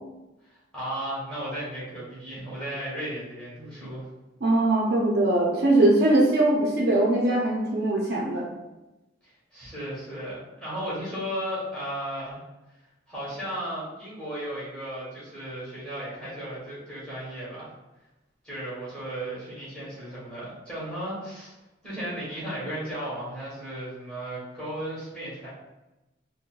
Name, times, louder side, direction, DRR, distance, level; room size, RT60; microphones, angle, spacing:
voice 1, 0.7-4.0 9.2-12.4 13.1-17.7 18.4-21.5 21.8-25.5, right 1 dB, 5° left, -9 dB, 1.3 m, -35 dB
voice 2, 4.4-8.4, right 2 dB, 55° right, -3 dB, 0.6 m, -21 dB
3.7 x 2.2 x 2.4 m, 1.0 s
head